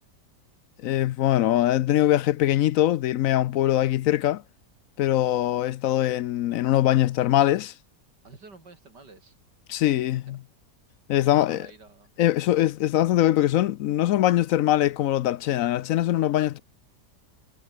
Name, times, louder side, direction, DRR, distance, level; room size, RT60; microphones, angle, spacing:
voice 1, 0.8-4.4 5.0-7.7 9.7-10.4 11.1-11.7 12.2-16.6, left 13 dB, 70° left, 0.8 m, -22 dB
voice 2, 8.2-9.4 10.3-10.4 11.2-12.1, right 3 dB, 85° right, 4.9 m, -50 dB
omnidirectional pair, 1.8 m